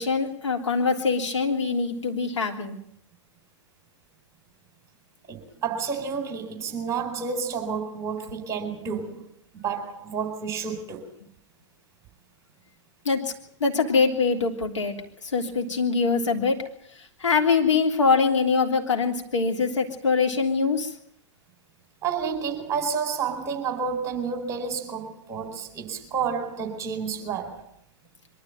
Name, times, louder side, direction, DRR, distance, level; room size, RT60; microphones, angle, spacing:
voice 1, 0.0-2.8 13.0-13.2 13.6-15.0 15.2-16.6 17.2-20.9, left 4 dB, 70° left, 3.4 m, -23 dB
voice 2, 5.3-11.1 22.0-27.7, right 6 dB, 20° right, 4.2 m, -30 dB
23.5 x 13.5 x 9.2 m
figure-of-eight pair, 110°, 16 cm